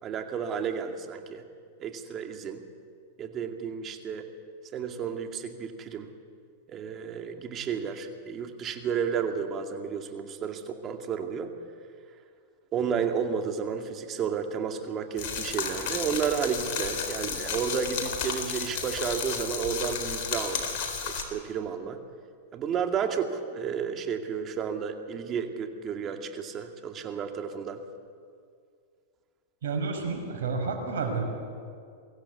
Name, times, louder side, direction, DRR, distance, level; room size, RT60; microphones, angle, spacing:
voice 1, 0.0-1.4 1.8-2.6 3.2-4.3 4.7-6.1 6.7-11.5 12.7-22.0 22.5-27.8, right 7 dB, 35° right, 5 dB, 2.3 m, -32 dB
sound 1, 15.2-21.2, left 6 dB, 60° left, 3.9 m, -32 dB
voice 2, 29.6-31.2, right 4 dB, 75° right, 3 dB, 5.6 m, -30 dB
23.5 x 15.5 x 8.4 m, 2.2 s
hypercardioid pair, 115°, 0 cm